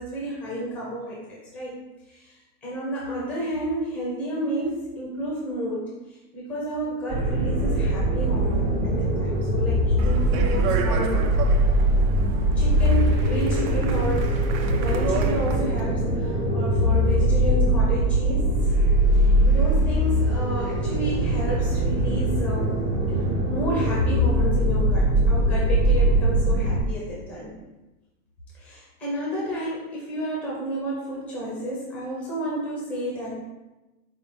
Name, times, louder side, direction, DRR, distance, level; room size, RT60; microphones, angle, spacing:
voice 1, 0.0-1.8 2.1-5.9 6.3-11.2 12.6-14.3 14.7-18.7 19.1-22.8 23.5-27.5 28.5-33.4, right 1 dB, 5° left, -5 dB, 0.4 m, -31 dB
sound 1, 7.1-26.8, right 1 dB, 15° right, 1.0 m, -22 dB
Speech, 10.0-15.8, right 6 dB, 60° right, 0.5 m, -33 dB
4.3 x 3.5 x 2.9 m, 1.1 s
supercardioid pair, 155°, 47 cm